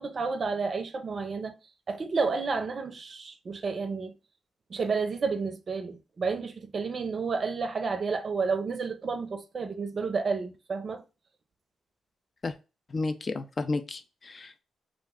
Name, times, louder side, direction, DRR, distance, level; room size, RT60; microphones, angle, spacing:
voice 1, 0.0-1.5 1.9-4.1 4.7-11.0, right 4 dB, 50° right, 0.4 m, -31 dB
voice 2, 12.9-14.6, left 3 dB, 45° left, 0.4 m, -32 dB
2.5 x 2.0 x 3.5 m
hypercardioid pair, 45°, 0 cm